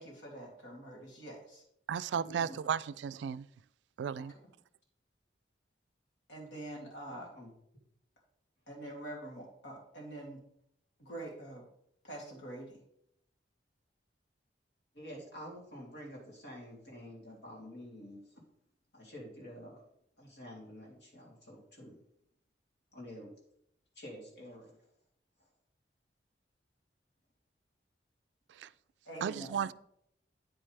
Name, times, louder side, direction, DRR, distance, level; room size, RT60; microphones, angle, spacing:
voice 1, 0.0-1.6 2.1-2.6 4.2-4.3 6.3-7.3 8.7-10.4 11.0-11.7 12.0-12.8 29.1-29.5, right 1 dB, 90° left, 2.8 m, -45 dB
voice 2, 1.9-3.5 4.0-4.3 28.6-28.7 29.2-29.7, right 7 dB, 75° right, 0.3 m, -34 dB
voice 3, 7.1-7.5 14.9-18.4 18.9-19.8 20.2-22.0 22.9-23.3 23.9-24.9, equal, 70° left, 3.2 m, -49 dB
9.0 x 8.8 x 3.4 m
head